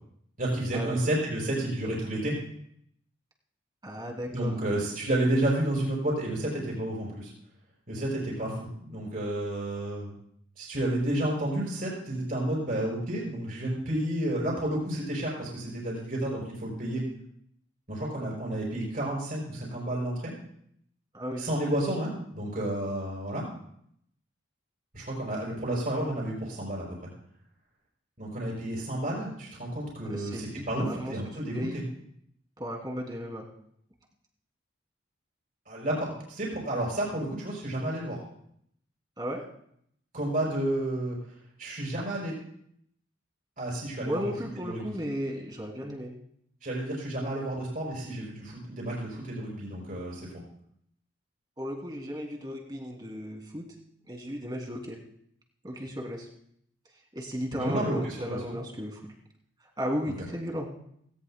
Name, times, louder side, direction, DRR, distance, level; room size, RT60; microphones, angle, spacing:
voice 1, 0.4-2.4 4.3-7.3 7.9-10.1 10.6-17.0 17.9-20.3 21.4-23.5 24.9-27.1 28.2-31.8 35.7-38.2 40.1-41.2 41.6-42.3 43.6-44.2 44.6-44.8 46.6-50.3 57.5-58.6, right 1 dB, 45° right, -3 dB, 5.7 m, -31 dB
voice 2, 3.8-4.5 21.1-21.5 30.0-31.1 31.5-31.8 32.6-33.4 39.2-39.4 44.0-46.1 51.6-53.6 54.1-55.0 55.6-56.3 57.1-59.0 59.8-60.7, equal, 20° right, 1 dB, 2.6 m, -35 dB
18.0 x 18.0 x 2.2 m, 0.69 s
head